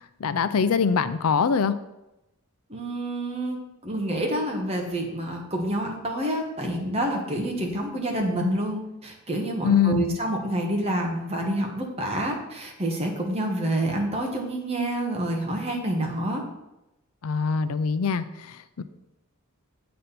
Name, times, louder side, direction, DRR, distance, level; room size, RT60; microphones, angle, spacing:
voice 1, 0.0-1.7 9.6-10.2 17.2-18.8, left 6 dB, 80° left, 13 dB, 0.5 m, -23 dB
voice 2, 2.7-16.4, right 1 dB, 25° right, 1 dB, 1.3 m, -28 dB
7.9 x 4.3 x 6.7 m, 0.94 s
head